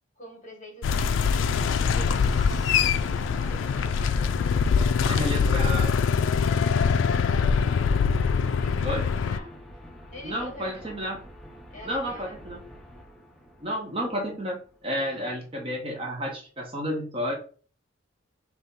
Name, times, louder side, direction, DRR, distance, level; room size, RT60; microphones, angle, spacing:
voice 1, 0.2-1.5 1.9-5.7 6.6-8.1 8.6-9.6 10.1-11.0 11.7-12.4 15.0-15.4, left 1 dB, 40° left, -1 dB, 1.9 m, -46 dB
sound 1, 0.8-9.4, left 6 dB, 70° left, 0.3 m, -23 dB
sound 2, 1.5-15.4, equal, ahead, 0.6 m, -46 dB
voice 2, 5.1-5.9 8.8-9.0 10.2-11.2 11.8-12.6 13.6-17.3, equal, 30° right, 1 dB, 0.8 m, -31 dB
3.7 x 2.9 x 4.1 m, 0.40 s
head